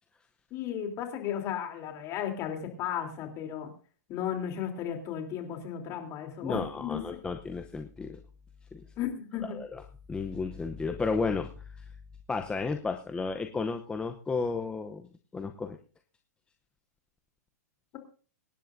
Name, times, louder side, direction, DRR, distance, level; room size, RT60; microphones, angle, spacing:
voice 1, 0.5-3.7 4.1-7.0 9.0-9.6, left 9 dB, 35° left, 4 dB, 3.4 m, -34 dB
voice 2, 6.4-8.2 8.7-8.9 9.5-9.8 10.1-11.8 12.3-15.1 15.3-15.8, left 4 dB, 10° left, 5 dB, 0.8 m, -33 dB
24.5 x 10.5 x 2.7 m, 0.39 s
hypercardioid pair, 130°, 9 cm